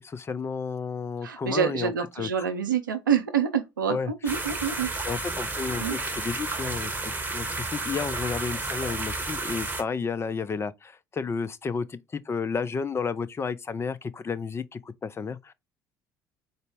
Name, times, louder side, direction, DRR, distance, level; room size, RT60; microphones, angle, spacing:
voice 1, 0.0-2.5 3.9-4.3 5.0-15.5, left 5 dB, 25° left, 0.4 m, -32 dB
voice 2, 1.2-4.9 5.8-6.0, right 7 dB, 85° right, 0.5 m, -27 dB
sound 1, 4.3-9.8, right 3 dB, 15° right, 1.0 m, -32 dB
3.9 x 2.0 x 3.3 m
figure-of-eight pair, 55°, 10 cm